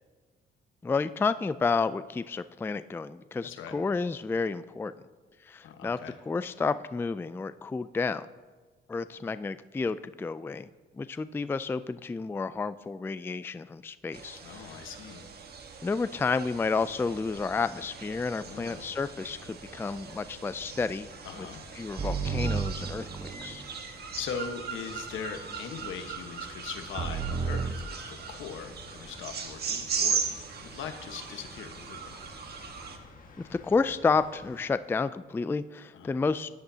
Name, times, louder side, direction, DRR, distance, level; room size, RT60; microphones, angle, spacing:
voice 1, 0.8-4.9 5.4-6.0 6.3-8.3 8.9-10.7 11.0-14.8 15.8-21.1 21.4-21.5 21.8-23.6 33.5-36.5, left 4 dB, 10° left, 14 dB, 0.3 m, -31 dB
voice 2, 3.4-3.8 5.6-6.2 14.4-15.3 18.5-18.8 21.2-21.6 24.2-30.2 30.6-32.1 35.9-36.1, left 7 dB, 80° left, 6 dB, 1.3 m, -40 dB
sound 1, 14.1-33.0, right 5 dB, 55° right, 1.4 m, -39 dB
sound 2, 16.7-34.6, left 3 dB, 45° left, 1.7 m, -53 dB
sound 3, 22.0-23.6 27.0-27.9, right 5 dB, 35° right, 0.9 m, -32 dB
16.5 x 10.5 x 2.8 m, 1.4 s
cardioid pair, 90°, 20 cm